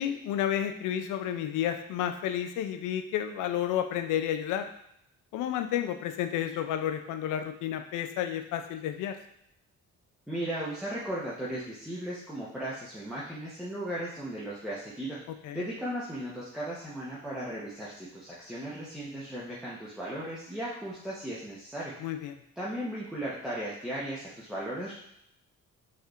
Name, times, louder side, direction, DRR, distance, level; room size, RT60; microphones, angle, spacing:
voice 1, 0.0-4.7 5.3-9.2 15.4-15.7 22.0-22.3, left 10 dB, 85° left, 8 dB, 0.5 m, -31 dB
voice 2, 10.3-15.2 15.5-21.9 22.6-24.9, right 1 dB, ahead, -8 dB, 0.9 m, -36 dB
4.3 x 3.3 x 2.4 m, 0.75 s
cardioid pair, 90°, 30 cm